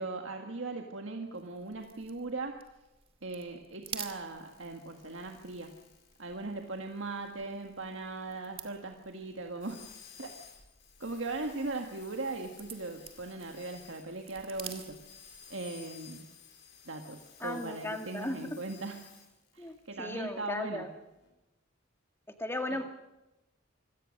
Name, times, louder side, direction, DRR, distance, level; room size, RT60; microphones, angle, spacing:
voice 1, 0.0-2.6 3.2-5.8 6.2-9.8 10.2-10.3 11.0-16.3 16.8-19.0 19.5-20.9 22.7-22.8, right 3 dB, 80° right, 3 dB, 1.7 m, -39 dB
sound 1, 1.3-15.7, right 7 dB, 30° right, 2.2 m, -51 dB
sound 2, 3.8-19.7 21.2-21.3, left 7 dB, 65° left, 5.1 m, -56 dB
voice 2, 17.4-18.6 19.6-20.9 22.4-22.8, left 1 dB, 15° left, 5 dB, 2.0 m, -36 dB
25.5 x 17.0 x 6.5 m, 0.98 s
head